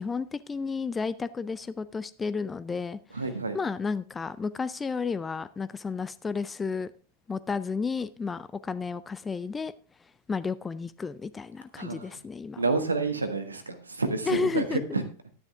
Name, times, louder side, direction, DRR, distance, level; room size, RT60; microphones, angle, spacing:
voice 1, 0.0-3.2 3.5-6.9 7.3-9.7 10.0-12.6 14.3-14.8, left 5 dB, 15° left, 0.4 m, -32 dB
voice 2, 3.1-3.6 11.8-12.1 12.6-15.0, right 3 dB, 80° right, 1.4 m, -29 dB
11.5 x 9.8 x 3.5 m
figure-of-eight pair, 90°, 0 cm